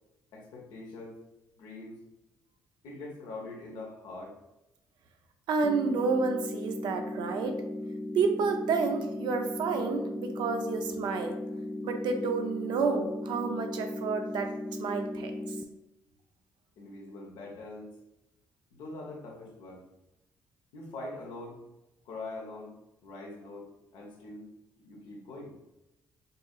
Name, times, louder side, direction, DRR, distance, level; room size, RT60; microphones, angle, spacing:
voice 1, 0.3-1.2 1.6-2.0 2.8-4.4 16.8-17.9 18.7-19.9 20.7-21.6 22.0-22.8 23.0-24.5 24.8-25.6, left 2 dB, 80° left, 0 dB, 1.0 m, -43 dB
voice 2, 5.5-7.6 8.1-11.4 11.8-14.5 14.8-15.6, right 4 dB, 75° right, 5 dB, 0.6 m, -30 dB
sound 1, 5.6-15.6, left 1 dB, ahead, 0.4 m, -37 dB
5.5 x 2.7 x 2.4 m, 0.91 s
supercardioid pair, 70°, 8 cm